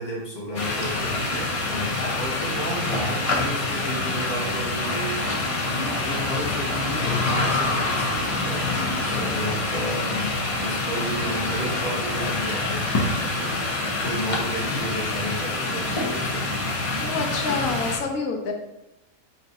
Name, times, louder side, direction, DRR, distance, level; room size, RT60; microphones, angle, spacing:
voice 1, 0.0-10.3 10.6-17.2, equal, 35° left, -4 dB, 1.1 m, -33 dB
sound 1, 0.5-18.0, left 2 dB, 55° left, 0.3 m, -26 dB
voice 2, 17.0-18.5, left 4 dB, 75° left, 2 dB, 1.1 m, -27 dB
5.5 x 2.8 x 2.6 m, 0.90 s
omnidirectional pair, 1.5 m